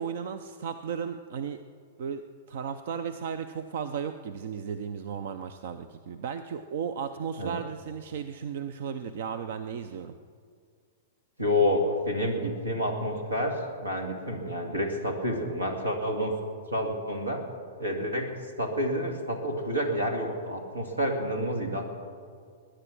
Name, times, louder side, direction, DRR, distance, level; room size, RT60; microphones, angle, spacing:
voice 1, 0.0-1.6 2.0-10.1, right 7 dB, 60° right, 11 dB, 0.6 m, -35 dB
voice 2, 11.4-16.3 16.7-17.4 17.8-18.3 18.6-21.8, equal, 85° right, 4 dB, 2.4 m, -29 dB
21.0 x 10.0 x 6.1 m, 2.1 s
figure-of-eight pair, 105°, 0 cm